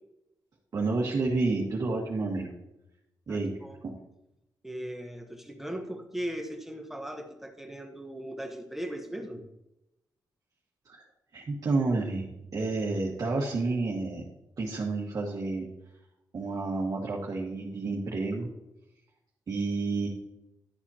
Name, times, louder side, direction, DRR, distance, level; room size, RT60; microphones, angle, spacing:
voice 1, 0.7-2.5 3.3-3.6 10.8-11.0 11.3-12.3 12.5-14.3 14.6-15.7 16.3-18.5 19.5-20.1, right 3 dB, 50° right, -3 dB, 1.5 m, -30 dB
voice 2, 3.3-3.8 4.6-9.4, right 1 dB, 5° right, 4 dB, 1.0 m, -38 dB
11.5 x 8.2 x 2.9 m, 0.88 s
wide cardioid pair, 140°, 7 cm